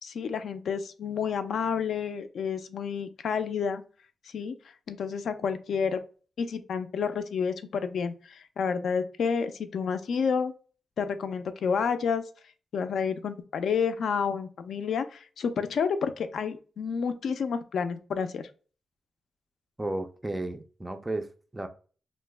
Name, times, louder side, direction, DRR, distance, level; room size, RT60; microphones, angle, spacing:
voice 1, 0.0-3.8 4.3-4.5 4.9-6.0 6.4-10.5 11.0-12.2 12.7-18.5, left 6 dB, 70° left, 0.4 m, -30 dB
voice 2, 19.8-21.7, right 2 dB, 10° right, 0.3 m, -33 dB
3.0 x 2.0 x 3.2 m
wide cardioid pair, 160°, 0 cm